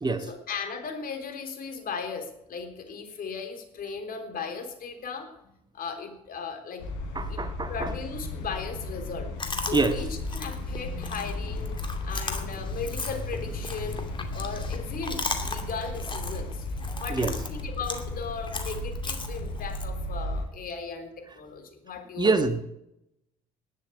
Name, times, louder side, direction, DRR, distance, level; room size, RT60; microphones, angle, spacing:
voice 1, 0.2-6.9 7.3-7.4 7.7-14.1 14.3-16.7 17.0-22.4, left 5 dB, 50° left, 5 dB, 3.5 m, -37 dB
sound 1, 6.8-20.4, left 2 dB, 70° left, 4.0 m, -35 dB
voice 2, 7.1-7.9 9.7-9.9 17.1-17.3 22.2-22.6, right 3 dB, 20° right, 8 dB, 1.5 m, -25 dB
Chewing mastication, 9.4-19.8, left 3 dB, 25° left, 2.5 m, -37 dB
19.5 x 7.4 x 8.5 m, 0.82 s
hypercardioid pair, 60°, 19 cm